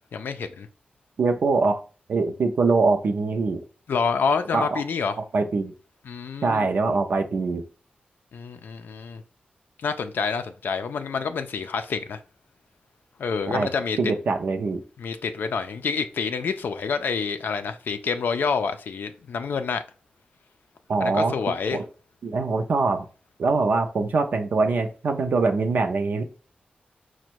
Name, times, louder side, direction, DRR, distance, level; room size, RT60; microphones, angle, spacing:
voice 1, 0.1-0.7 3.9-5.2 6.1-6.7 8.3-9.2 9.8-12.2 13.2-14.0 15.0-19.8 21.0-21.8, left 5 dB, 75° left, 0.4 m, -27 dB
voice 2, 1.2-1.8 2.1-3.6 4.5-4.8 5.3-5.7 6.4-7.6 13.5-13.7 14.0-14.8 20.9-21.4 21.7-21.8 22.2-23.1 23.4-26.2, right 3 dB, 65° right, 0.5 m, -23 dB
5.0 x 2.1 x 4.4 m
wide cardioid pair, 120°, 3 cm